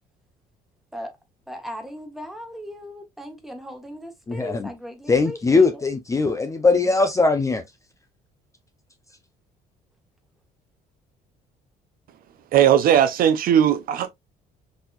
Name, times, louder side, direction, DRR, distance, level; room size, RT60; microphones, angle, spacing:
voice 1, 1.5-5.8, equal, ahead, 1.1 m, -38 dB
voice 2, 4.3-4.7 5.1-7.6, left 3 dB, 20° left, 0.5 m, -20 dB
voice 3, 12.5-14.1, right 10 dB, 60° right, 0.5 m, -18 dB
4.0 x 2.8 x 2.4 m
cardioid pair, 110°, 17 cm